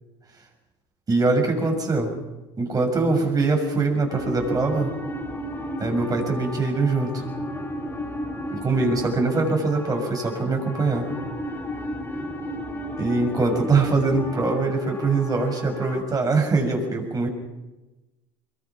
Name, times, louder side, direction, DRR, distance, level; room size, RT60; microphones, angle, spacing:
voice 1, 1.1-2.2 2.6-4.9 5.8-7.2 8.5-11.1 13.0-17.3, right 3 dB, 30° right, 3 dB, 6.7 m, -23 dB
sound 1, 4.1-16.0, left 1 dB, 15° left, 5.2 m, -33 dB
24.5 x 22.0 x 6.0 m, 1.1 s
supercardioid pair, 85°, 12 cm